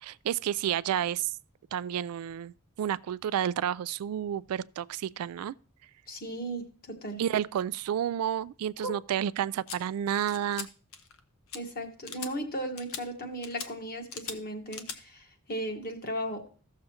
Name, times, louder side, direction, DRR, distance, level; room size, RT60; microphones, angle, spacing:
voice 1, 0.0-1.3 1.7-5.5 7.2-10.7, right 10 dB, 70° right, 0.3 m, -30 dB
voice 2, 6.1-7.2 8.8-8.9 11.5-16.5, right 1 dB, 45° left, 1.4 m, -36 dB
sound 1, 9.7-9.8 10.3-10.7 10.9-11.2 11.5-11.6 12.1-12.3 12.8-13.0 13.4-13.7 14.1-14.4 14.7-15.0, left 6 dB, 70° left, 0.9 m, -39 dB
15.0 x 6.6 x 2.8 m
head